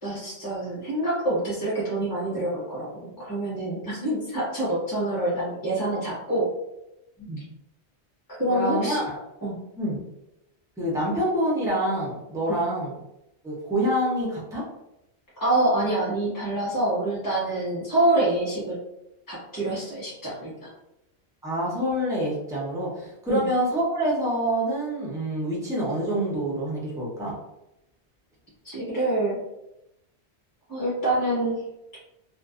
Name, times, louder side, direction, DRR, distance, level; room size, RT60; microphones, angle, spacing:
voice 1, 0.0-6.5 8.4-9.0 9.4-9.6 12.5-12.6 15.4-18.8 19.3-20.7 23.3-23.5 28.6-29.4 30.7-31.6, right 1 dB, 20° left, -7 dB, 1.1 m, -26 dB
voice 2, 8.5-9.0 9.8-10.0 10.8-12.9 13.4-14.6 21.4-27.3, right 1 dB, 5° right, -6 dB, 0.6 m, -26 dB
2.5 x 2.3 x 2.4 m, 0.88 s
omnidirectional pair, 1.2 m